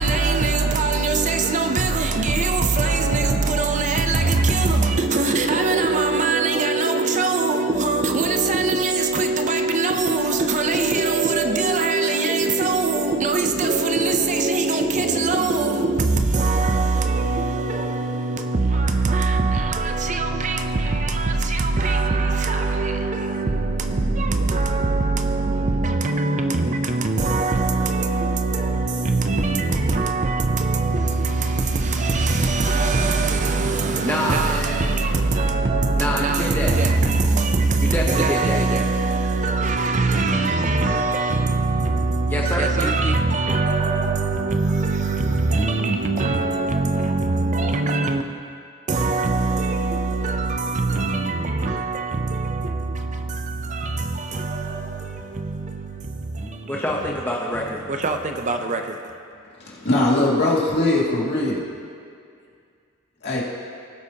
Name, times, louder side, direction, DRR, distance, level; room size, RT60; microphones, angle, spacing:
voice 1, 0.0-48.2 48.9-56.8 57.9-59.0, right 3 dB, 35° right, 0.6 m, -22 dB
voice 2, 34.0-34.8 36.0-36.7 37.8-38.6 42.3-42.9 56.7-57.8, left 1 dB, 10° left, 0.9 m, -26 dB
voice 3, 59.7-61.6 63.2-63.4, left 1 dB, 55° left, 2.2 m, -20 dB
19.0 x 8.2 x 2.9 m
head